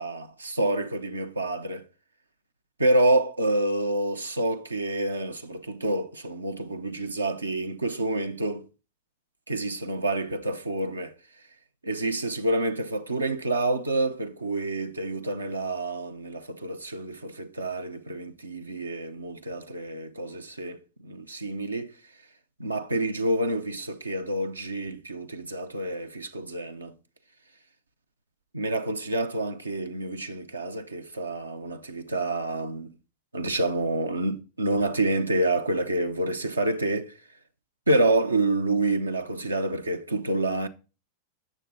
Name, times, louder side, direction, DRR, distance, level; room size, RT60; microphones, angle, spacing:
voice 1, 0.0-1.9 2.8-8.7 9.5-11.2 11.8-21.9 22.6-26.9 28.5-32.9 33.3-37.1 37.9-40.7, right 2 dB, 80° right, 0.6 m, -28 dB
8.3 x 6.5 x 3.9 m
figure-of-eight pair, 90°, 0 cm